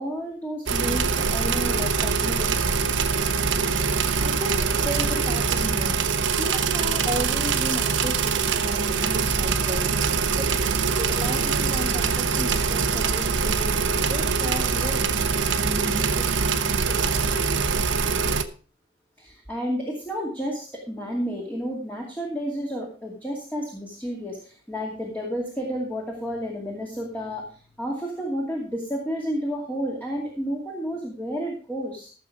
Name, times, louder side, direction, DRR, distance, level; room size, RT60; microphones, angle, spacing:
voice 1, 0.0-2.9 4.6-4.9 19.2-32.1, equal, 10° left, -2 dB, 2.5 m, -31 dB
sound 1, 0.7-18.4, right 5 dB, 85° right, 1.0 m, -23 dB
voice 2, 4.2-6.0 6.3-10.5 10.9-13.8 14.1-17.4, equal, 20° right, 2 dB, 1.9 m, -34 dB
15.0 x 6.9 x 4.8 m, 0.40 s
head